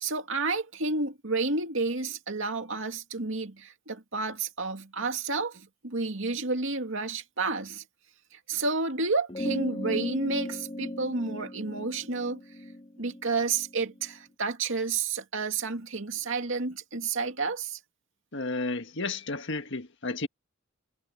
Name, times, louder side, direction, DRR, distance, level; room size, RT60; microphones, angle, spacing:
voice 1, 0.0-7.8 8.3-12.4 13.0-17.8, right 3 dB, 65° right, 2.5 m, -30 dB
sound 1, 9.3-14.1, left 1 dB, 30° left, 2.6 m, -37 dB
voice 2, 18.3-20.3, left 3 dB, 60° left, 1.7 m, -32 dB
head